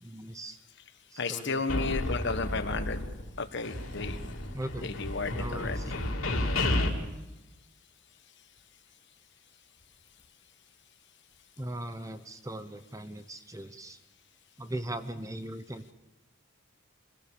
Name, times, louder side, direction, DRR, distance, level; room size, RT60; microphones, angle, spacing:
voice 1, 0.0-0.6 1.1-2.0 4.5-4.9 5.3-5.8 11.6-14.0 14.6-15.9, right 1 dB, 15° right, 10 dB, 0.8 m, -39 dB
voice 2, 1.2-3.0 3.4-4.2 4.8-5.9, left 4 dB, 55° left, 9 dB, 1.4 m, -33 dB
sound 1, 1.7-3.4 3.6-6.9, left 1 dB, 80° left, 3.1 m, -32 dB
25.0 x 17.0 x 7.1 m, 1.0 s
head